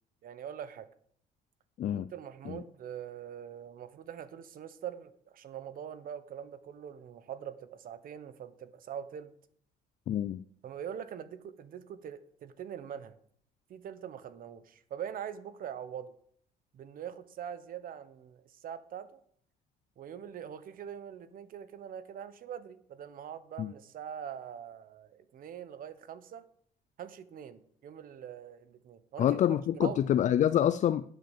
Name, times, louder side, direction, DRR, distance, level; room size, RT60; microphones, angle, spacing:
voice 1, 0.2-0.9 1.9-9.3 10.6-13.2 13.7-16.1 16.7-19.2 20.0-26.4 27.0-29.4 29.7-30.0, right 9 dB, 55° right, 14 dB, 1.2 m, -43 dB
voice 2, 10.1-10.4 23.6-23.7 29.2-31.0, left 10 dB, 45° left, 13 dB, 0.5 m, -27 dB
11.5 x 8.1 x 7.5 m, 0.63 s
cardioid pair, 110°, 17 cm